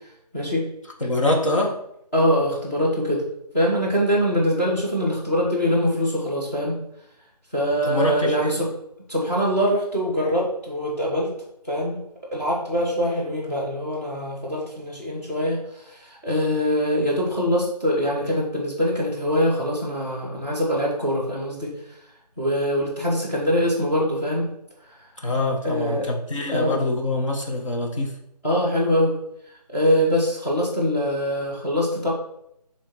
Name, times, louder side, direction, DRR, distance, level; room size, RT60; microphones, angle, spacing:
voice 1, 0.3-0.7 2.1-3.2 3.5-6.8 7.5-8.7 9.1-11.3 11.7-12.0 12.3-21.9 22.4-24.4 25.2-25.3 25.6-26.1 26.5-26.8 28.4-29.2 29.7-32.1, equal, 20° left, -8 dB, 1.7 m, -23 dB
voice 2, 1.0-1.8 7.8-8.6 25.2-28.1, left 2 dB, 50° left, 0 dB, 1.4 m, -24 dB
8.8 x 3.4 x 4.5 m, 0.77 s
figure-of-eight pair, 175°, 21 cm